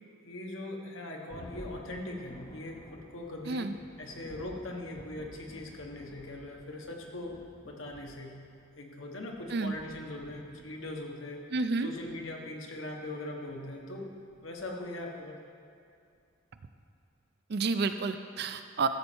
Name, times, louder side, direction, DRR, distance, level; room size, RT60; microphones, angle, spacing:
voice 1, 0.2-3.7 4.0-7.4 7.6-8.4 8.8-11.4 11.8-14.1 14.4-15.4, left 1 dB, 65° left, 0 dB, 1.3 m, -40 dB
Thunder, 1.3-15.3, left 1 dB, 30° left, 0.9 m, -53 dB
voice 2, 11.5-11.9 17.5-18.9, right 4 dB, 50° right, 9 dB, 0.4 m, -30 dB
14.0 x 7.1 x 4.4 m, 2.4 s
head